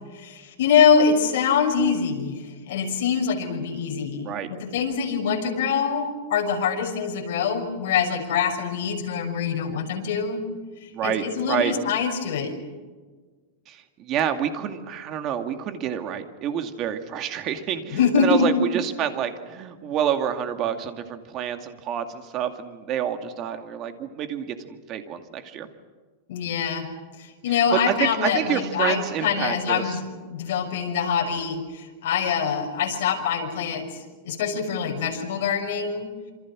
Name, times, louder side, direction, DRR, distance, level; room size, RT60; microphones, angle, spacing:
voice 1, 0.1-10.4 10.8-12.5 17.9-18.5 26.3-26.9 27.2-30.0 30.3-33.9 34.2-36.1, left 6 dB, 65° left, 2 dB, 6.2 m, -24 dB
voice 2, 10.9-11.7 13.7-25.7 27.7-30.0, right 9 dB, 30° right, 7 dB, 2.3 m, -28 dB
27.0 x 26.5 x 6.3 m, 1.4 s
supercardioid pair, 160°, 0 cm